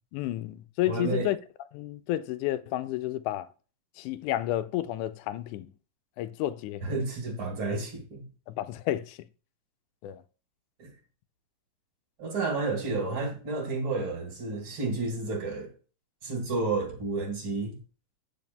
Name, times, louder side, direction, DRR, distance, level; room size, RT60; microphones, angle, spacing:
voice 1, 0.1-1.4 1.7-3.5 4.0-5.7 6.2-6.8 8.5-9.2 10.0-10.2, left 14 dB, 80° left, 1.9 m, -31 dB
voice 2, 0.9-1.3 6.8-8.2 10.8-10.9 12.2-15.7 16.2-17.7, right 3 dB, 40° right, 2.8 m, -31 dB
9.2 x 5.2 x 5.3 m
omnidirectional pair, 3.9 m